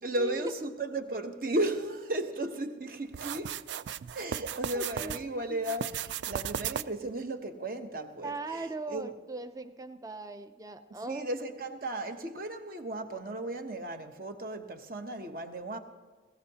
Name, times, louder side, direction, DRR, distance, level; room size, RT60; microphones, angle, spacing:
voice 1, 0.0-3.6 4.1-9.1 11.0-15.8, right 1 dB, 50° right, 0.9 m, -35 dB
sound 1, 3.1-5.2 5.6-7.1, right 9 dB, 75° right, 0.3 m, -36 dB
voice 2, 4.7-5.4 8.2-11.3, right 2 dB, 20° right, 0.5 m, -39 dB
20.0 x 17.0 x 2.8 m
head